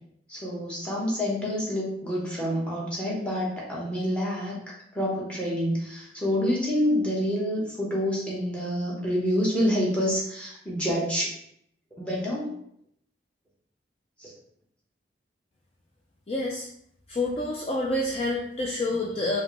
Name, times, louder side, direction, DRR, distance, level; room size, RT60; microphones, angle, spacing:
voice 1, 0.3-4.6 4.9-11.4 12.0-12.6 14.2-14.3, equal, 5° left, -4 dB, 1.1 m, -27 dB
voice 2, 16.3-16.7 17.1-19.4, left 2 dB, 30° left, -2 dB, 0.4 m, -28 dB
4.7 x 2.7 x 3.1 m, 0.70 s
head